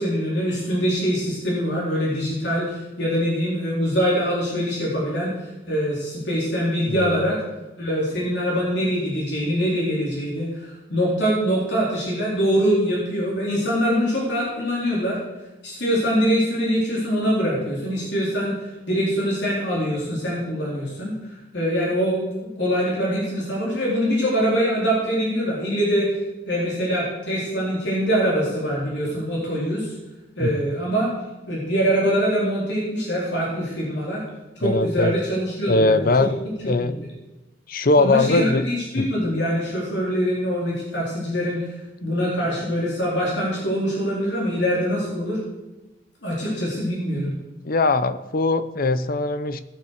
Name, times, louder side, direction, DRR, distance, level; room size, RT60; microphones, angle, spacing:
voice 1, 0.0-7.4 7.8-15.2 15.6-21.1 21.5-26.1 26.5-29.9 30.4-31.1 31.5-34.2 34.6-36.3 36.8-36.9 38.0-41.6 42.0-45.4 46.2-47.3, equal, 70° left, -4 dB, 4.2 m, -24 dB
voice 2, 6.9-7.2 30.4-30.7 34.6-35.1 35.7-36.4 36.6-36.9 37.7-38.6 38.9-39.1 47.6-49.6, left 2 dB, 50° left, 12 dB, 0.8 m, -21 dB
18.5 x 6.9 x 6.6 m, 1.0 s
head